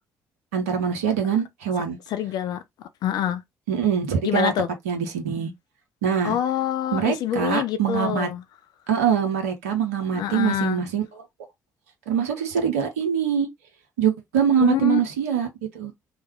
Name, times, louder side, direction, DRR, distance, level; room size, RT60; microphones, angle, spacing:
voice 1, 0.5-2.0 3.7-4.5 4.9-5.5 6.0-6.4 6.9-8.3 8.9-11.1 12.1-13.5 14.0-15.5 15.7-15.9, right 8 dB, 75° right, 0.6 m, -23 dB
voice 2, 2.1-2.6 3.0-3.4 4.2-4.7 6.2-8.4 10.1-10.8 14.6-15.0, left 10 dB, 55° left, 0.4 m, -25 dB
3.1 x 2.1 x 2.9 m
figure-of-eight pair, 45°, 8 cm